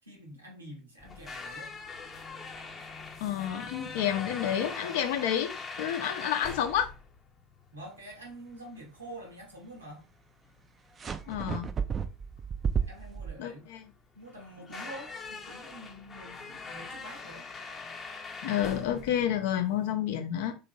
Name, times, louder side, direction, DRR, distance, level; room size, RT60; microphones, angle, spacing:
voice 1, 0.0-1.7 7.7-10.1 12.9-13.7 14.1-17.5, right 1 dB, 90° right, 0.9 m, -47 dB
sound 1, 1.0-19.9, left 4 dB, 25° left, 0.7 m, -43 dB
voice 2, 3.2-6.9 11.3-11.7 13.4-13.8 18.4-20.5, left 10 dB, 65° left, 0.5 m, -30 dB
sound 2, 11.0-13.3, right 6 dB, 30° right, 0.3 m, -32 dB
2.9 x 2.3 x 2.6 m
figure-of-eight pair, 75°, 0 cm